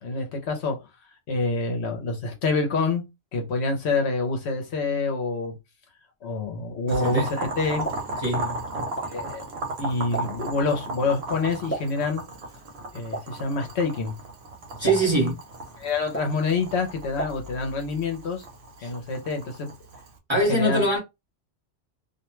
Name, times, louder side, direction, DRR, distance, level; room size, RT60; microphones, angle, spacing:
voice 1, 0.0-0.9 1.3-3.0 3.3-5.6 6.2-7.9 8.8-9.4 9.8-12.2 12.9-14.1 14.8-15.0 15.8-18.4 18.8-19.7 20.3-20.9, left 3 dB, 70° left, 0.9 m, -27 dB
voice 2, 6.9-7.3 8.2-8.6 14.8-15.3 18.8-18.9 20.3-21.0, right 1 dB, 25° right, 1.1 m, -23 dB
Boiling, 6.9-20.1, right 2 dB, 65° right, 0.9 m, -35 dB
Explosion, 7.6-17.9, right 2 dB, 10° left, 0.7 m, -40 dB
2.4 x 2.2 x 3.0 m
omnidirectional pair, 1.2 m